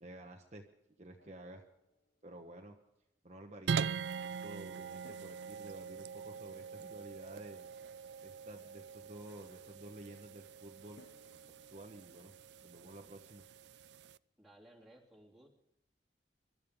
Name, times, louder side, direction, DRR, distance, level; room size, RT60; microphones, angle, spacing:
voice 1, 0.0-0.7 1.0-1.6 2.2-2.8 3.2-7.6 8.2-11.0 11.7-12.3 12.6-13.4, right 1 dB, 40° right, 2 dB, 1.2 m, -52 dB
Drum, 1.2-2.6 5.0-8.0 11.0-13.8, left 2 dB, 85° left, 0.9 m, -68 dB
sound 1, 3.7-14.2, right 6 dB, 70° right, 0.4 m, -43 dB
voice 2, 14.4-15.5, right 1 dB, ahead, -4 dB, 3.2 m, -59 dB
24.0 x 12.5 x 3.6 m, 0.84 s
head